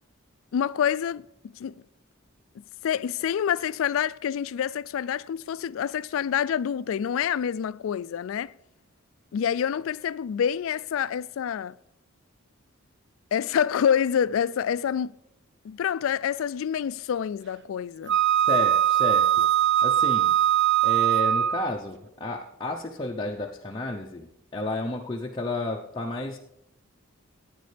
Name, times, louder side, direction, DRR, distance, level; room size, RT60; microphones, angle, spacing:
voice 1, 0.5-1.2 1.6-1.8 2.8-8.5 9.3-11.8 13.3-15.1 15.6-18.2, left 8 dB, 70° left, 0.3 m, -27 dB
Wind instrument woodwind instrument, 18.1-21.7, right 11 dB, 55° right, 0.4 m, -21 dB
voice 2, 18.5-19.5 19.8-20.3 20.8-26.4, left 2 dB, 20° left, 0.6 m, -32 dB
15.0 x 9.4 x 3.3 m
head